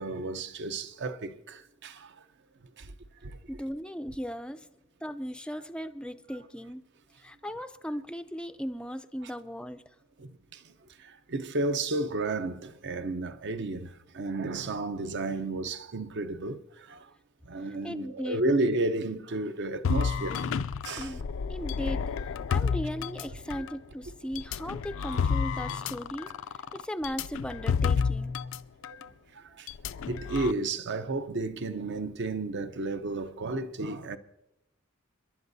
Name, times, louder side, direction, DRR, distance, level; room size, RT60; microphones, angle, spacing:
voice 1, 0.0-2.1 2.8-2.9 3.2-3.4 7.4-7.5 10.2-10.3 11.3-16.6 16.9-17.0 17.5-20.4 20.8-21.1 29.6-29.7 30.1-34.2, right 2 dB, 55° right, 0.7 m, -32 dB
voice 2, 3.5-4.7 5.0-6.8 7.2-9.9 17.8-18.4 21.0-22.2 22.5-26.3 26.7-28.4, equal, 5° left, 0.4 m, -37 dB
sound 1, 19.8-23.7 24.4-28.6 28.8-29.0 29.7-30.5, left 6 dB, 65° left, 0.4 m, -30 dB
29.0 x 11.5 x 2.7 m
head